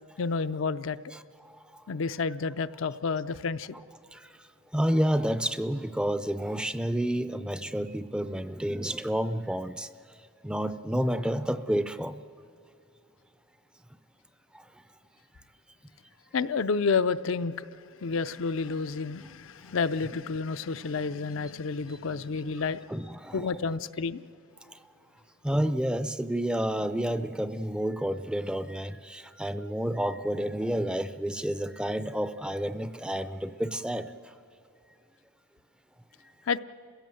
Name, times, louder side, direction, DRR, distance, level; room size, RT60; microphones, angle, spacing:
voice 1, 0.2-1.0 1.9-3.7 16.3-17.7 18.0-22.8 23.3-24.2 36.5-36.6, left 4 dB, 70° left, 11 dB, 0.5 m, -30 dB
voice 2, 1.1-1.8 4.1-4.3 4.7-9.9 10.4-12.2 14.5-14.6 22.9-23.5 24.7-24.8 25.4-34.1, equal, 5° right, 12 dB, 0.4 m, -30 dB
30.0 x 16.5 x 7.7 m, 2.5 s
head